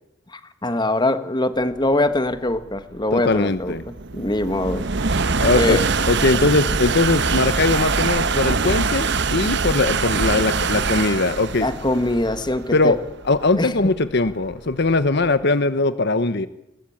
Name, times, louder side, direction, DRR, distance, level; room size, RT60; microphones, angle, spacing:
voice 1, 0.3-4.9 5.5-5.8 11.6-13.0 13.6-13.7, left 1 dB, 20° left, 11 dB, 1.5 m, -23 dB
sound 1, 1.9-15.3, right 4 dB, 55° right, 1.1 m, -24 dB
voice 2, 3.1-3.8 5.4-5.8 6.1-11.7 12.7-13.0 13.3-16.5, left 3 dB, 55° left, 13 dB, 1.0 m, -20 dB
29.5 x 21.5 x 8.7 m, 0.87 s
head